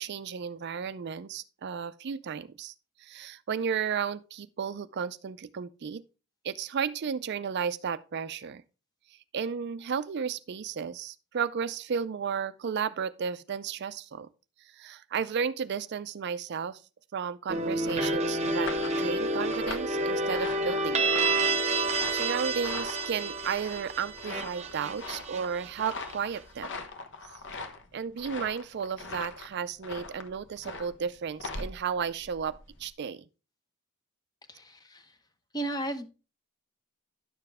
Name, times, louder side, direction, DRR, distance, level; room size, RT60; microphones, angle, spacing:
voice 1, 0.0-2.7 3.0-6.0 6.4-8.6 9.1-14.3 14.6-16.8 17.1-21.1 21.6-26.7 27.9-33.2, right 6 dB, 50° right, 0.4 m, -33 dB
sound 1, 17.5-26.4, right 2 dB, 30° right, 0.9 m, -29 dB
sound 2, 17.6-32.9, left 3 dB, 55° left, 1.1 m, -42 dB
voice 2, 34.5-35.1 35.5-36.1, right 1 dB, 20° left, 0.8 m, -35 dB
11.0 x 6.8 x 3.5 m
head